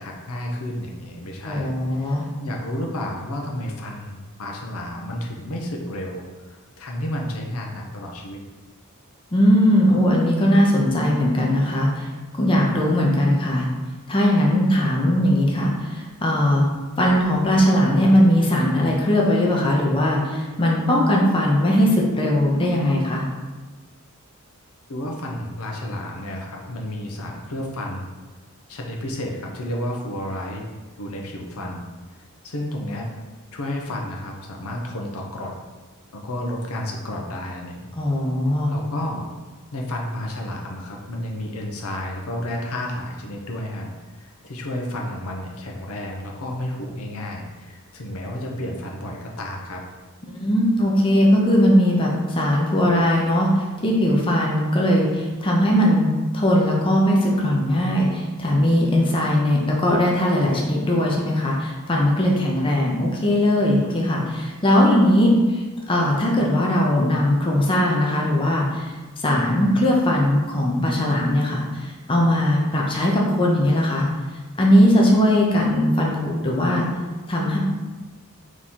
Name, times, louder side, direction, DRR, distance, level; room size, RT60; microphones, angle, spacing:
voice 1, 0.0-8.4 24.9-28.1 28.7-30.6 31.0-31.8 32.4-33.1 33.5-35.5 36.1-37.9 38.7-39.3 39.7-49.8, left 1 dB, 85° left, 0 dB, 0.7 m, -31 dB
voice 2, 1.5-2.2 9.3-12.1 12.4-13.6 14.1-16.7 17.0-23.2 38.0-38.7 50.2-56.1 56.3-74.1 74.6-76.9 77.3-77.6, equal, 25° left, -2 dB, 0.6 m, -19 dB
3.6 x 3.0 x 4.2 m, 1.3 s
head